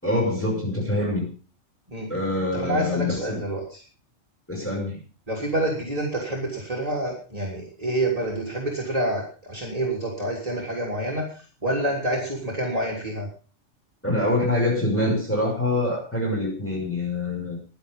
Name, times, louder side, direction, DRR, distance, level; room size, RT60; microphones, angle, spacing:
voice 1, 0.0-1.3 2.1-3.4 4.5-5.0 14.0-17.6, left 1 dB, 10° left, -3 dB, 6.2 m, -25 dB
voice 2, 2.5-3.6 5.3-13.3, right 1 dB, 30° right, -3 dB, 3.5 m, -27 dB
15.5 x 11.0 x 5.4 m, 0.38 s
omnidirectional pair, 1.4 m